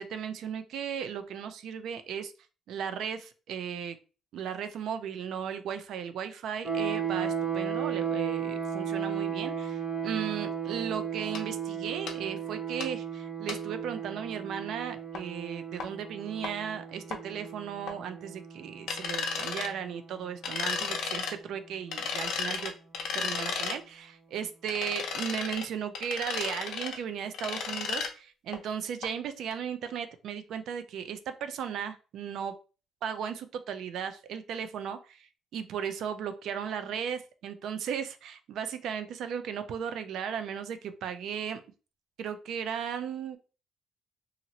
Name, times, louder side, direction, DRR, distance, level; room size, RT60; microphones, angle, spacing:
voice 1, 0.0-2.3 2.7-4.0 4.3-22.7 23.1-32.5 33.0-41.6 42.2-43.4, right 8 dB, 70° right, 10 dB, 0.4 m, -36 dB
sound 1, 6.6-20.4, right 7 dB, 30° right, 0.8 m, -35 dB
sound 2, 11.3-11.4 12.1-12.2 12.8-12.9 13.5-13.6 15.1-15.2 15.8-15.9 16.4-16.5 17.1-17.2 17.9-18.0 18.9-19.7 20.4-21.3 21.9-23.8 24.7-25.7 25.9-27.0 27.3-28.1 28.5-28.6 29.0-29.1 29.5-29.6, left 5 dB, 75° left, 0.6 m, -33 dB
2.8 x 2.5 x 2.8 m, 0.34 s
cardioid pair, 120°, 0 cm